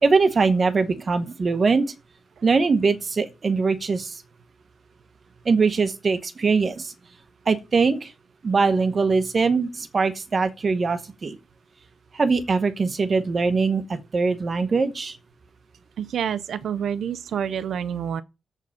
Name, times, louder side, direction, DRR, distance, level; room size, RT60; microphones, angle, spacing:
voice 1, 0.0-1.9 2.4-4.2 5.4-6.9 7.5-8.1 8.4-11.4 12.1-15.2, right 4 dB, 35° right, 1.0 m, -22 dB
voice 2, 16.0-18.2, right 8 dB, 70° right, 0.6 m, -28 dB
7.7 x 5.0 x 7.1 m
wide cardioid pair, 175°, 0 cm